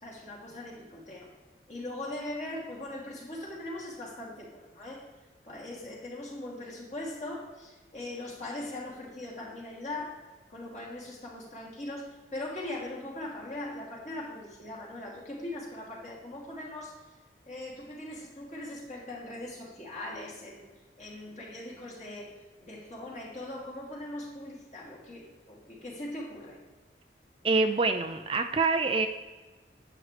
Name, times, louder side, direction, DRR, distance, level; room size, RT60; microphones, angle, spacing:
voice 1, 0.0-1.3 1.7-5.0 5.4-10.2 10.5-16.9 17.5-20.7 21.0-22.3 22.6-26.6, left 1 dB, 40° left, -4 dB, 2.8 m, -40 dB
voice 2, 27.4-29.1, right 3 dB, 30° right, 7 dB, 0.4 m, -26 dB
11.0 x 8.4 x 3.3 m, 1.3 s
head